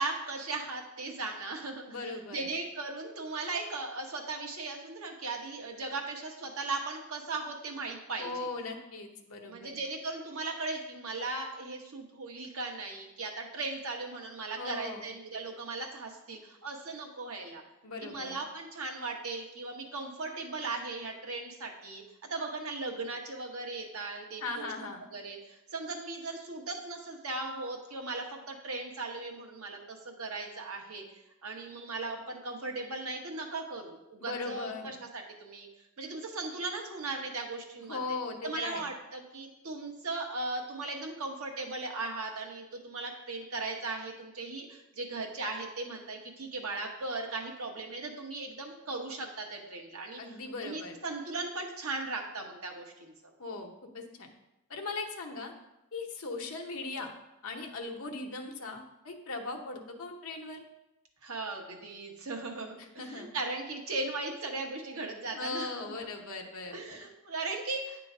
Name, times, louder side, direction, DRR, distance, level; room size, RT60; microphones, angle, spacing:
voice 1, 0.0-8.5 9.5-17.6 18.0-22.0 22.3-24.7 25.1-31.0 31.4-35.7 36.0-38.2 38.4-50.2 50.6-53.1 61.2-65.8 66.7-68.0, right 3 dB, 75° right, 1 dB, 1.1 m, -38 dB
voice 2, 1.9-2.5 8.2-9.7 14.6-15.0 17.8-18.4 24.4-25.1 34.2-34.9 37.8-38.9 50.2-51.0 53.4-54.3 54.7-55.5 55.9-57.1 57.4-60.6 62.8-63.3 65.3-67.0, left 3 dB, 75° left, 2 dB, 0.9 m, -39 dB
8.9 x 3.0 x 4.9 m, 0.93 s
head